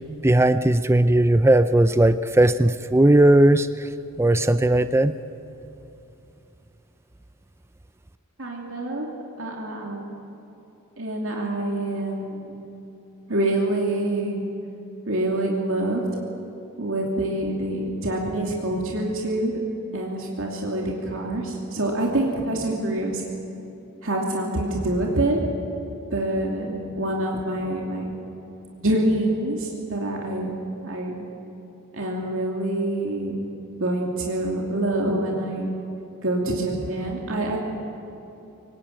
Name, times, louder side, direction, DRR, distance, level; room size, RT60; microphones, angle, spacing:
voice 1, 0.2-3.9 4.2-5.1, right 1 dB, 10° right, 12 dB, 0.4 m, -17 dB
voice 2, 8.4-9.1 9.4-10.1 11.0-12.6 13.3-14.4 15.1-16.0 16.8-19.6 19.9-23.2 24.0-25.4 26.1-28.1 28.8-31.2 31.9-33.5 33.8-35.7 36.2-37.6, right 1 dB, 60° right, -1 dB, 2.8 m, -26 dB
23.5 x 19.0 x 9.0 m, 2.9 s
head